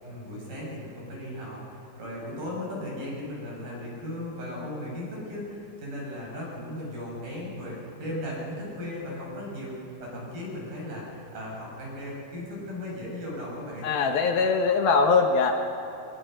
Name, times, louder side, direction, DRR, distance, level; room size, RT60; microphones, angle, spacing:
voice 1, 0.0-9.7 10.0-14.0, left 1 dB, 55° right, -4 dB, 8.5 m, -36 dB
voice 2, 13.8-15.5, left 4 dB, 70° left, 4 dB, 2.6 m, -22 dB
23.0 x 21.5 x 6.5 m, 2.7 s
omnidirectional pair, 4.8 m